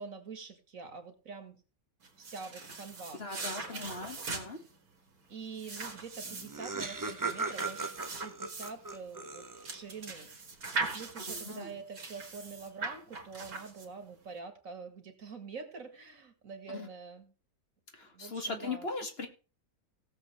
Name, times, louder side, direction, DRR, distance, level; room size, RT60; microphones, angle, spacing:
voice 1, 0.0-1.6 2.2-4.1 5.3-10.3 10.6-17.3 18.1-18.9, right 5 dB, 65° right, 8 dB, 2.2 m, -46 dB
sound 1, 2.0-14.2, right 3 dB, 85° right, 2.5 m, -41 dB
voice 2, 3.2-4.6 11.3-11.7 16.7-16.9 17.9-19.3, left 3 dB, 45° left, 5 dB, 2.1 m, -39 dB
Laughter, 6.0-6.1 6.2-9.9, right 3 dB, 20° right, 0.5 m, -38 dB
17.5 x 7.3 x 3.3 m, 0.34 s
omnidirectional pair, 1.5 m